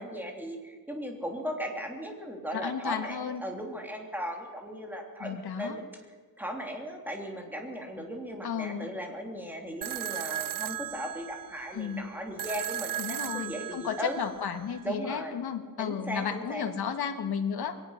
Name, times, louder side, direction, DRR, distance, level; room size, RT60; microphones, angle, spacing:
voice 1, 0.0-5.8 6.4-14.2 14.8-15.3 15.8-16.7, equal, 5° right, 1 dB, 3.3 m, -37 dB
voice 2, 2.5-3.4 5.2-5.8 8.4-8.9 11.7-12.1 13.0-17.8, left 7 dB, 85° left, 5 dB, 1.8 m, -33 dB
sound 1, 9.8-14.8, right 12 dB, 60° right, 0.6 m, -37 dB
23.0 x 18.5 x 6.6 m, 1.4 s
wide cardioid pair, 150°, 38 cm